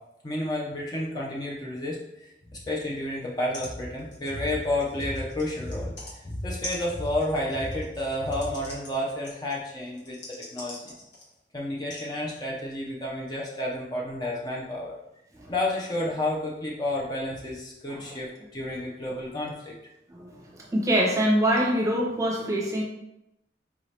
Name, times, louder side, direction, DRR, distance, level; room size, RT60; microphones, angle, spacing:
voice 1, 0.2-10.9 11.5-15.0 15.5-19.7, left 1 dB, 20° left, -4 dB, 0.5 m, -31 dB
sound 1, 3.3-3.4 3.5-3.7 4.0-6.2 6.6-11.4 11.9-12.1 12.9-13.0, left 1 dB, 80° left, 1.2 m, -43 dB
voice 2, 20.1-22.8, equal, 20° right, -3 dB, 0.8 m, -25 dB
4.8 x 2.8 x 3.2 m, 0.86 s
head